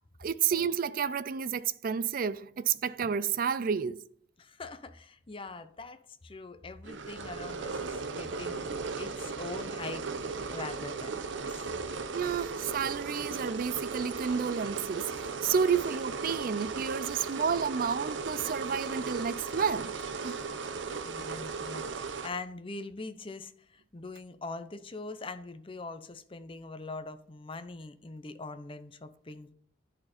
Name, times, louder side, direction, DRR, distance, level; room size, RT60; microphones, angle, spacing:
voice 1, 0.2-4.0 12.1-20.0 20.2-20.4, right 7 dB, 50° right, 0.4 m, -30 dB
voice 2, 4.4-8.7 9.0-10.1 10.5-11.5 21.0-29.5, left 3 dB, 30° left, 0.6 m, -43 dB
sound 1, 6.8-22.3, right 4 dB, 85° right, 0.7 m, -36 dB
10.5 x 4.3 x 4.2 m
head